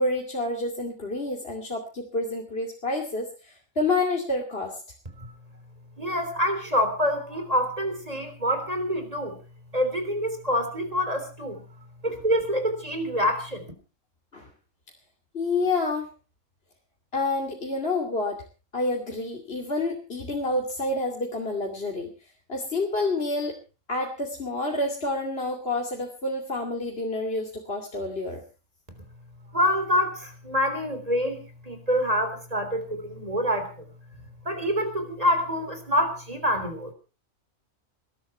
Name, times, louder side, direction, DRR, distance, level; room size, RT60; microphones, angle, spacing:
voice 1, 0.0-4.8 14.3-14.5 15.3-16.0 17.1-18.4 18.7-22.1 22.5-23.5 23.9-28.4, left 2 dB, 50° left, 1 dB, 2.8 m, -28 dB
voice 2, 6.0-9.4 9.7-11.6 12.0-13.6 29.5-33.7 34.5-36.9, equal, 30° right, 7 dB, 3.8 m, -26 dB
21.0 x 13.0 x 4.4 m, 0.35 s
omnidirectional pair, 1.4 m